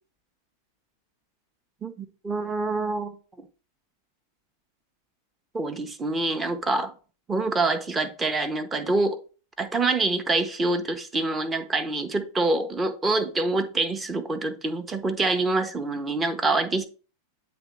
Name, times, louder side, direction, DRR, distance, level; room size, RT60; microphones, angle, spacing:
voice 1, 1.8-3.2 5.5-6.9 7.3-9.2 9.6-16.8, right 2 dB, 15° right, 0.9 m, -26 dB
9.1 x 3.2 x 4.2 m
figure-of-eight pair, 90°, 0 cm